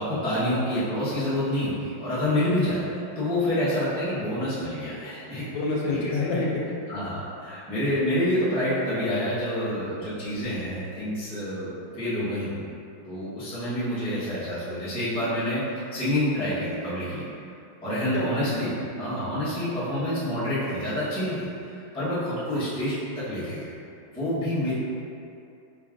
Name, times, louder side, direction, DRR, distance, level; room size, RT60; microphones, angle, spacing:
voice 1, 0.0-5.4 5.8-6.1 6.9-12.6 13.0-15.6 15.9-17.2 17.8-18.7 19.0-23.7 24.1-24.7, left 1 dB, 10° left, -12 dB, 0.4 m, -28 dB
voice 2, 5.5-6.7 18.1-18.6, left 3 dB, 75° left, -3 dB, 1.3 m, -27 dB
3.9 x 2.5 x 3.6 m, 2.6 s
omnidirectional pair, 2.2 m